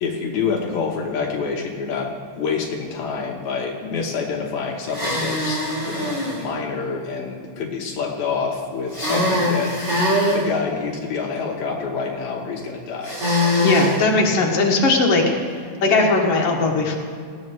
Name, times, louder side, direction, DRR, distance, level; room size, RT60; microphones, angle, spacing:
voice 1, 0.0-9.7 10.3-13.2, left 5 dB, 75° left, 0 dB, 2.4 m, -27 dB
sound 1, 4.9-6.4 8.9-10.4 13.0-14.0, left 1 dB, 15° right, 2.8 m, -22 dB
voice 2, 13.6-15.6 15.8-17.0, left 3 dB, 60° left, -1 dB, 2.4 m, -18 dB
19.5 x 13.0 x 3.2 m, 2.1 s
omnidirectional pair, 3.3 m